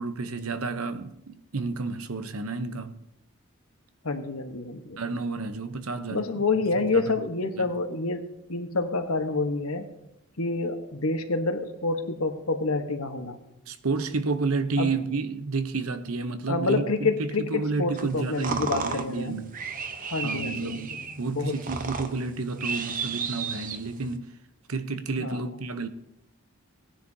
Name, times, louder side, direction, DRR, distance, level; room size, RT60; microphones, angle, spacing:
voice 1, 0.0-3.0 5.0-6.2 6.9-7.0 7.6-7.7 13.7-19.6 20.2-24.3 24.7-25.9, right 3 dB, 85° right, 0.8 m, -31 dB
voice 2, 4.0-5.0 6.1-8.2 8.5-9.9 10.4-13.4 14.8-15.0 16.5-19.4 20.0-20.8 21.2-21.5 25.2-25.4, left 3 dB, 90° left, 1.2 m, -28 dB
sound 1, 18.0-24.2, right 5 dB, 40° right, 0.8 m, -34 dB
18.0 x 10.0 x 2.8 m
head